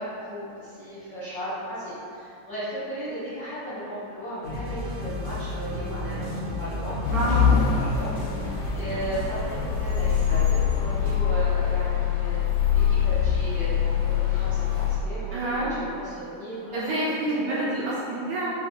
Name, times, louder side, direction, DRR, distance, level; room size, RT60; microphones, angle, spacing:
voice 1, 0.0-8.1 8.4-16.8 17.2-17.6, right 1 dB, 75° left, -14 dB, 1.0 m, -36 dB
sound 1, 4.4-11.1, left 2 dB, 50° right, 1.4 m, -33 dB
sound 2, 7.0-15.0, left 8 dB, 90° left, 1.7 m, -24 dB
voice 2, 7.1-7.6 15.3-15.8 16.7-18.5, right 1 dB, 80° right, -8 dB, 1.8 m, -27 dB
5.7 x 3.1 x 2.8 m, 2.6 s
omnidirectional pair, 4.1 m